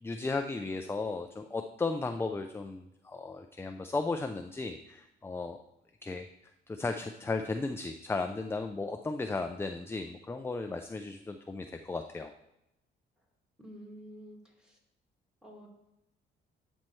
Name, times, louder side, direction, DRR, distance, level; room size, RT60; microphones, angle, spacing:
voice 1, 0.0-5.6 6.0-6.3 6.7-12.3, left 3 dB, 10° left, 6 dB, 0.3 m, -35 dB
voice 2, 13.6-14.8 15.4-15.7, equal, 5° right, -1 dB, 2.1 m, -49 dB
12.0 x 4.4 x 3.1 m, 0.87 s
cardioid pair, 90°, 20 cm